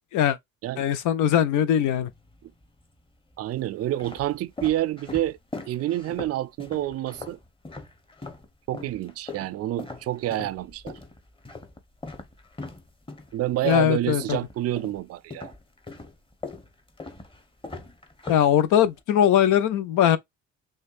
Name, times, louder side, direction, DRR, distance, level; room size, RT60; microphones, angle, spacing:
voice 1, 0.8-2.1 13.6-14.4 18.3-20.2, left 10 dB, 85° left, 0.6 m, -21 dB
sound 1, 1.9-2.7 3.3-8.5 8.7-15.0 15.3-19.0, left 3 dB, 15° left, 1.0 m, -40 dB
voice 2, 3.4-5.4 5.6-7.4 8.7-11.0 13.3-15.5, right 14 dB, 55° right, 0.4 m, -28 dB
6.4 x 2.3 x 2.5 m
cardioid pair, 90°, 30 cm